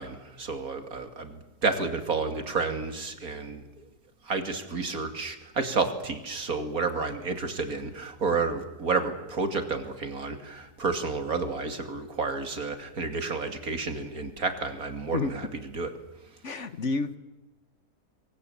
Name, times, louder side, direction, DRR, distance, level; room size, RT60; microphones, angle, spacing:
voice 1, 0.0-3.6 4.3-15.4 15.7-15.9, right 4 dB, 70° right, 7 dB, 3.0 m, -30 dB
voice 2, 16.4-17.2, left 3 dB, 50° left, 12 dB, 1.5 m, -30 dB
27.0 x 23.0 x 8.7 m, 1.1 s
omnidirectional pair, 1.6 m